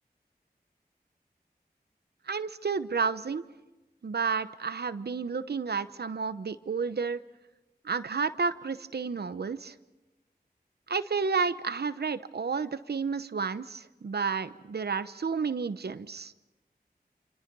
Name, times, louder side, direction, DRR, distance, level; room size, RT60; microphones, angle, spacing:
voice 1, 2.3-3.4 4.0-7.2 7.8-9.7 10.9-16.3, right 5 dB, 80° right, 13 dB, 0.9 m, -31 dB
28.0 x 27.5 x 5.4 m, 1.1 s
cardioid pair, 40°, 17 cm